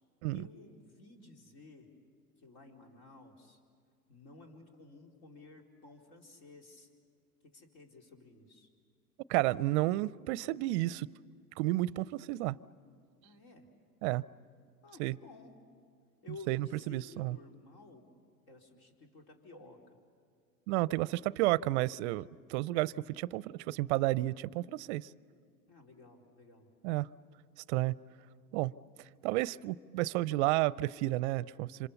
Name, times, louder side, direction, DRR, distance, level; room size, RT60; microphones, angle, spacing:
voice 1, 0.3-1.9 2.4-3.6 4.1-6.9 7.4-8.7 13.2-13.7 14.8-15.7 16.2-18.1 18.5-19.8 25.7-26.7, left 3 dB, 60° left, 4.0 m, -54 dB
voice 2, 9.3-11.1 11.6-12.6 14.0-14.2 15.0-15.2 16.5-17.4 20.7-25.1 26.8-27.1 27.7-28.0 28.5-28.7 29.2-31.9, right 18 dB, 50° right, 0.5 m, -31 dB
26.5 x 26.0 x 7.1 m
hypercardioid pair, 105°, 46 cm